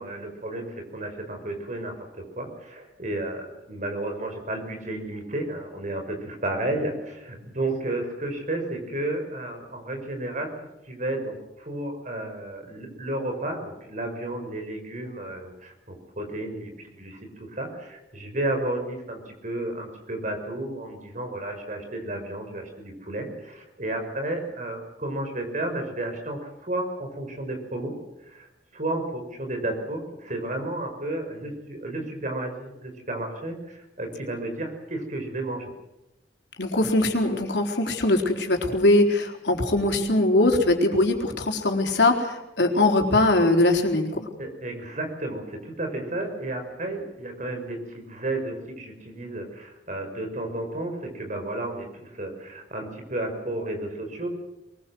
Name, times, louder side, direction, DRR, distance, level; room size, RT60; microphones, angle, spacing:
voice 1, 0.0-10.5 10.9-27.9 28.2-35.7 44.4-54.3, right 1 dB, 45° right, 4 dB, 5.8 m, -32 dB
voice 2, 36.6-44.1, left 2 dB, 85° left, 2 dB, 4.1 m, -21 dB
23.0 x 21.5 x 7.9 m, 0.94 s
head